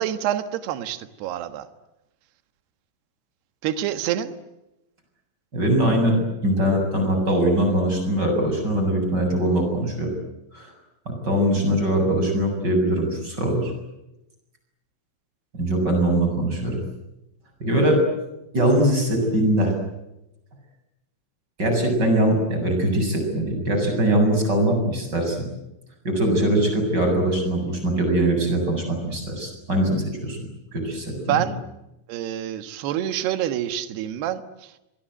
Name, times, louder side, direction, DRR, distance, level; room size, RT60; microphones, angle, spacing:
voice 1, 0.0-1.7 3.6-4.3 31.2-31.6 32.1-34.7, right 11 dB, 65° right, 10 dB, 3.3 m, -27 dB
voice 2, 5.5-10.1 10.5-10.7 11.2-13.7 15.6-16.8 17.6-18.0 18.5-19.7 21.6-25.4 26.0-30.4 30.7-31.4, right 1 dB, 20° right, 4 dB, 7.8 m, -22 dB
27.0 x 22.5 x 9.2 m, 0.91 s
omnidirectional pair, 5.5 m